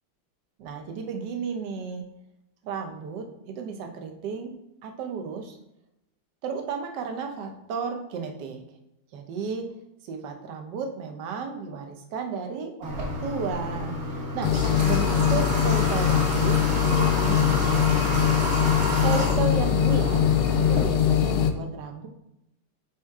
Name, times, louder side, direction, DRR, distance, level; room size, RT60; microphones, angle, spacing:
voice 1, 0.6-2.1 2.6-4.5 4.8-5.6 6.4-8.6 9.1-9.6 10.0-13.9 14.3-14.5 14.8-18.1 19.0-20.2 20.7-22.1, right 5 dB, 65° right, 4 dB, 1.3 m, -33 dB
Water / Water tap faucet, 12.8-20.8, equal, 40° right, 1.6 m, -30 dB
sound 1, 14.4-21.5, left 9 dB, 80° left, 1.4 m, -22 dB
8.7 x 3.1 x 3.6 m, 0.86 s
omnidirectional pair, 2.4 m